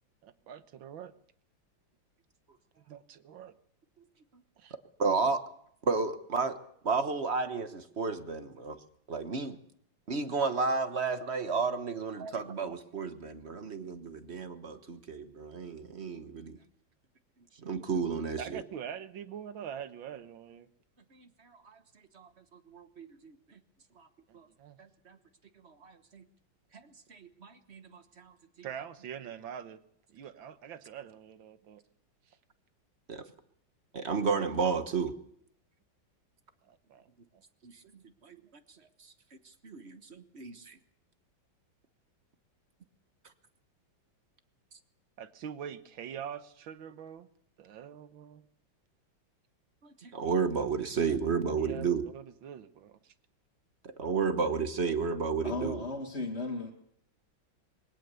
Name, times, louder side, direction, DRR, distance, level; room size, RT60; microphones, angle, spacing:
voice 1, 0.2-1.1 2.8-3.5 4.6-4.8 12.2-12.3 18.4-20.7 24.3-24.8 28.6-29.8 30.1-31.8 32.3-32.4 36.6-37.4 45.2-47.3 47.6-48.5 51.1-51.2 51.5-53.1, right 8 dB, 80° right, 11 dB, 1.8 m, -44 dB
voice 2, 5.0-5.4 5.8-6.6 6.8-8.8 9.1-9.6 10.1-16.6 17.6-18.6 21.1-21.3 22.1-22.3 22.7-23.4 24.0-24.1 24.3-24.5 25.1-25.2 25.6-26.2 26.7-26.8 27.1-28.3 33.1-33.2 33.9-35.2 37.6-37.7 38.2-38.4 39.6-40.7 49.8-52.0 54.0-55.8, right 5 dB, 40° right, 9 dB, 1.3 m, -32 dB
voice 3, 55.4-56.7, left 2 dB, 35° left, -1 dB, 2.5 m, -35 dB
22.5 x 17.5 x 6.9 m, 0.70 s
omnidirectional pair, 2.1 m